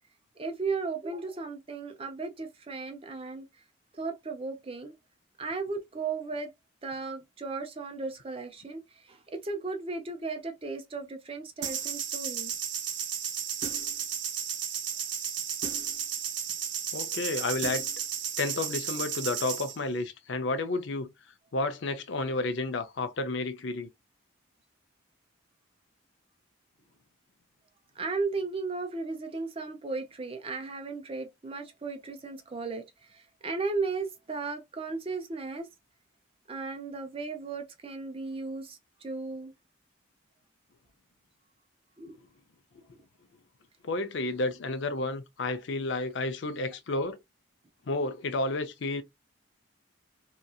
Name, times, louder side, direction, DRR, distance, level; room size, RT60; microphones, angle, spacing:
voice 1, 0.4-3.5 3.9-4.9 5.4-6.5 6.8-12.5 28.0-35.7 36.5-39.5 42.0-42.2, right 4 dB, 30° right, 0.5 m, -35 dB
sound 1, 11.6-19.8, right 8 dB, 65° right, 0.7 m, -33 dB
voice 2, 16.9-17.9 18.4-21.1 21.5-23.9 43.8-47.2 47.9-49.0, left 2 dB, 65° left, 0.5 m, -31 dB
2.9 x 2.6 x 2.2 m
head